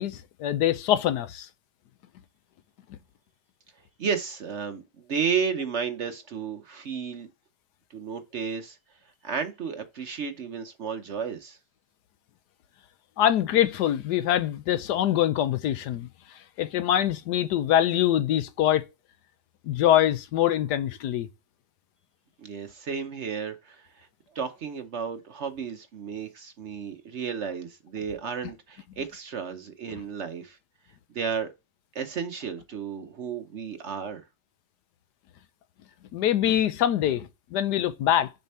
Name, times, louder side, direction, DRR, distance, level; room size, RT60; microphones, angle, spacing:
voice 1, 0.0-1.5 2.9-3.0 13.2-16.1 16.6-18.9 19.6-21.3 36.1-38.3, left 11 dB, 80° left, 1.3 m, -24 dB
voice 2, 4.0-7.3 7.9-8.8 9.2-11.6 22.4-24.1 24.3-30.6 31.1-31.5 31.9-34.2, right 6 dB, 55° right, 0.9 m, -33 dB
6.8 x 4.2 x 4.2 m
omnidirectional pair, 1.7 m